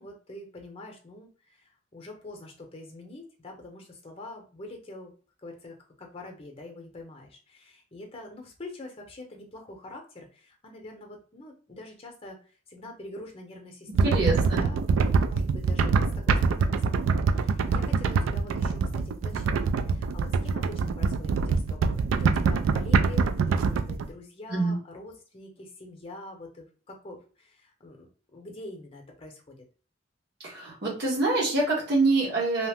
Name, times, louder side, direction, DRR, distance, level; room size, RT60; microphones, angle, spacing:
voice 1, 0.0-5.1 5.4-12.4 12.7-14.3 14.6-29.6, left 2 dB, 30° left, 2 dB, 0.7 m, -45 dB
sound 1, 13.9-24.0, right 5 dB, 90° right, 0.3 m, -24 dB
voice 2, 14.0-14.6 24.5-24.8 30.4-32.7, right 2 dB, 55° right, -4 dB, 1.0 m, -25 dB
2.8 x 2.0 x 3.4 m, 0.38 s
head